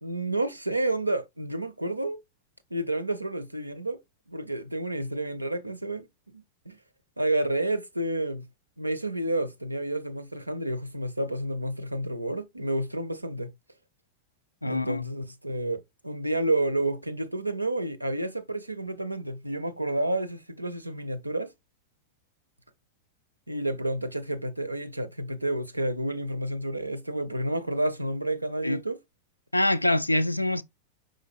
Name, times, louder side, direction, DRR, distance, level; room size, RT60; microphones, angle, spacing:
voice 1, 0.0-2.2 2.7-4.0 4.3-6.1 6.3-6.8 7.2-8.5 8.8-13.5 14.6-21.5 23.5-29.0, right 1 dB, 85° right, 0.4 m, -30 dB
voice 2, 14.6-15.0 28.6-28.8 29.5-30.6, left 1 dB, 85° left, 0.3 m, -24 dB
5.1 x 3.8 x 2.4 m
figure-of-eight pair, 90°, 0 cm